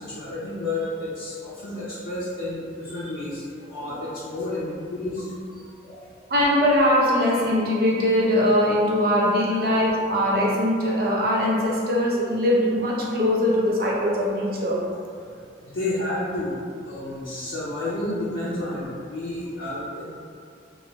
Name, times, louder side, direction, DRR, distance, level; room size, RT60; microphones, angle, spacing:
voice 1, 0.0-5.2 5.5-6.1 9.6-9.7 15.6-16.5 16.8-20.1, left 2 dB, 90° left, -9 dB, 0.5 m, -31 dB
voice 2, 6.3-14.8, left 1 dB, 55° right, -4 dB, 0.5 m, -21 dB
3.0 x 2.2 x 2.9 m, 2.3 s
head